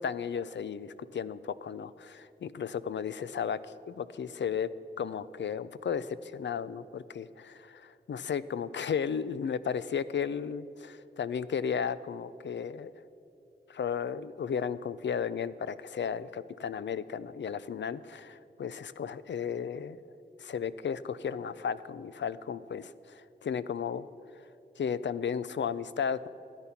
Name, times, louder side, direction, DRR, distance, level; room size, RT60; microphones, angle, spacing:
voice 1, 0.0-4.7 5.0-12.9 13.7-20.0 20.4-24.1 24.8-26.3, left 7 dB, 85° left, 15 dB, 0.4 m, -34 dB
13.5 x 9.8 x 5.8 m, 2.9 s
wide cardioid pair, 50°, 18 cm